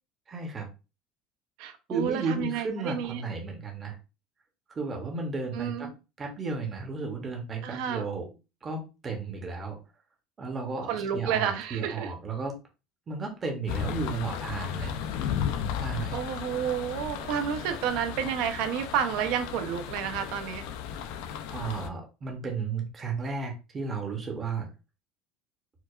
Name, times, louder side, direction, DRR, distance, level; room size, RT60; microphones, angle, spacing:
voice 1, 0.3-0.7 1.9-4.0 4.7-5.9 6.2-8.2 8.6-9.8 10.4-12.5 13.1-15.0 15.8-16.2 21.5-24.7, right 4 dB, 20° right, 1 dB, 0.7 m, -33 dB
voice 2, 1.6-3.2 5.5-5.9 7.6-8.1 10.9-12.1 14.8-14.9 16.1-20.6, right 8 dB, 60° right, 8 dB, 0.5 m, -30 dB
sound 1, 13.7-21.9, left 8 dB, 65° left, 0.3 m, -35 dB
4.5 x 2.3 x 2.3 m, 0.30 s
cardioid pair, 175°, 0 cm